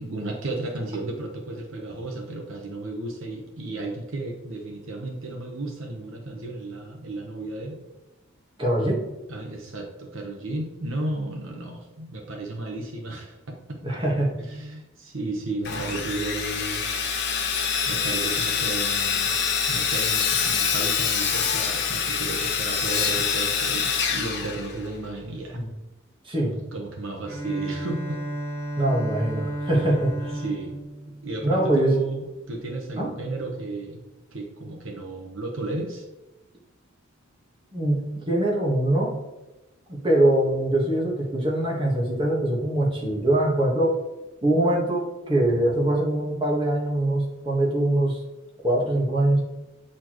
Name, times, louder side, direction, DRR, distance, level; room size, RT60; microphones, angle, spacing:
voice 1, 0.0-7.8 9.3-13.5 14.4-16.9 17.9-19.4 19.7-25.6 26.4-28.2 30.4-30.8 31.2-34.0 34.3-36.1, right 2 dB, 70° right, 1 dB, 1.0 m, -33 dB
voice 2, 8.6-9.0 13.8-14.3 25.5-25.7 26.2-26.5 28.8-30.4 31.4-31.9 33.0-33.1 37.7-39.1 39.9-44.0 44.4-48.2 48.6-49.4, right 1 dB, 25° right, -3 dB, 1.4 m, -23 dB
Sawing, 15.6-25.1, left 6 dB, 55° left, 0.9 m, -25 dB
Bowed string instrument, 27.3-32.0, right 1 dB, 45° right, 1.7 m, -33 dB
8.4 x 4.3 x 3.0 m, 1.0 s
head